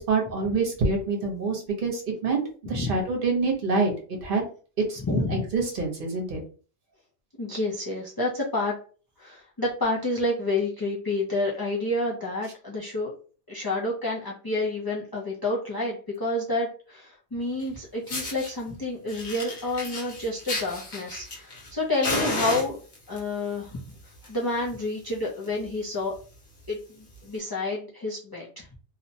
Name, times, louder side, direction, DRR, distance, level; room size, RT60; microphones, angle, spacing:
voice 1, 0.0-2.4 2.7-3.9 4.2-4.4 4.9-6.4, right 3 dB, 55° right, 1 dB, 1.0 m, -26 dB
voice 2, 5.0-5.4 7.4-8.7 9.2-13.1 13.5-22.8 23.1-23.8 24.2-26.1 26.7-28.7, left 2 dB, 30° left, -5 dB, 0.4 m, -29 dB
Fire, 17.6-17.7 18.1-18.5 19.1-21.7 22.0-23.2 24.0-24.3 24.6-24.7 25.1-25.2 25.4-25.7 26.2-26.3 27.2-27.3, left 1 dB, 55° left, 1.1 m, -32 dB
2.7 x 2.1 x 2.7 m, 0.40 s
omnidirectional pair, 1.1 m